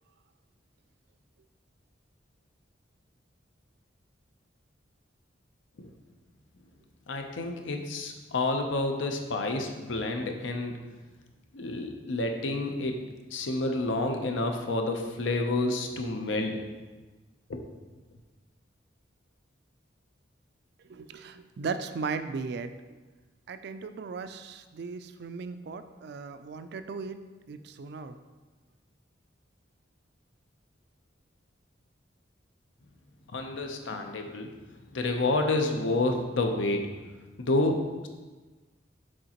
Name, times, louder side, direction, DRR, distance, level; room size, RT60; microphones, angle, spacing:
voice 1, 7.1-10.7 11.5-13.0 13.3-16.6 17.5-17.6 33.3-34.5 34.9-36.8 37.4-38.1, left 2 dB, 80° left, 4 dB, 0.7 m, -29 dB
voice 2, 20.8-22.7 23.5-27.2 27.5-28.2, right 4 dB, 60° right, 10 dB, 0.3 m, -37 dB
6.4 x 5.0 x 2.9 m, 1.3 s
head